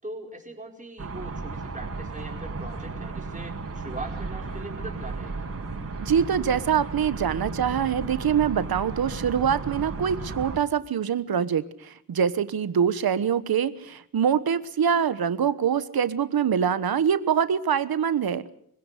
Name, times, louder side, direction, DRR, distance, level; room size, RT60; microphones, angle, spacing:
voice 1, 0.0-5.5, right 2 dB, 20° right, 1 dB, 4.8 m, -40 dB
sound 1, 1.0-10.6, right 3 dB, 45° right, 6.0 m, -34 dB
voice 2, 6.0-18.5, right 8 dB, 85° right, 14 dB, 1.2 m, -24 dB
24.5 x 16.5 x 8.3 m, 0.68 s
wide cardioid pair, 85°, 35 cm